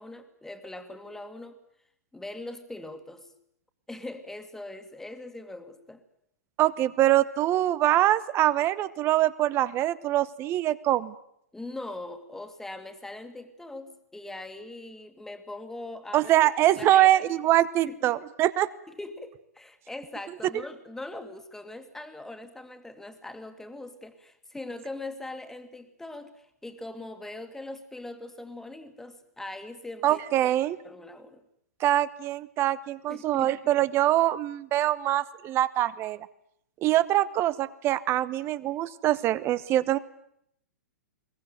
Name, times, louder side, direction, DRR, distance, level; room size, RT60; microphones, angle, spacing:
voice 1, 0.0-1.6 2.1-3.3 3.9-6.0 11.5-16.3 16.8-17.3 17.8-18.1 18.9-30.2 30.8-31.4 33.1-33.5, left 2 dB, 5° left, 8 dB, 2.2 m, -41 dB
voice 2, 6.6-11.1 16.1-18.7 30.0-30.8 31.8-36.3 36.8-40.0, right 14 dB, 30° right, 17 dB, 1.0 m, -24 dB
22.0 x 18.5 x 9.4 m, 0.73 s
figure-of-eight pair, 115°, 8 cm